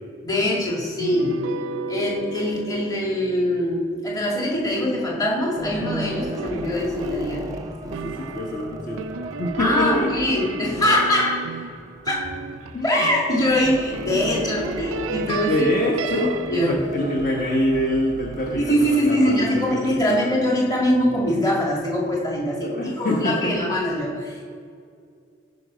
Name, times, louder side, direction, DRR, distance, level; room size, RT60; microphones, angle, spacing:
voice 1, 0.2-1.4 1.9-7.4 8.2-8.3 9.6-11.4 12.0-12.4 12.8-15.5 16.1-16.8 18.6-24.4, left 1 dB, 20° left, -3 dB, 1.8 m, -23 dB
sound 1, 1.0-5.4 5.8-13.6 13.9-16.8, right 5 dB, 80° right, 0.4 m, -35 dB
sound 2, 4.1-4.9 5.4-20.0, equal, 15° right, 0.7 m, -37 dB
voice 2, 7.8-9.1 9.4-10.1 12.7-13.0 15.3-19.8 20.1-20.2 22.6-23.5, left 1 dB, 40° left, -2 dB, 1.2 m, -25 dB
14.5 x 5.4 x 5.0 m, 2.3 s
head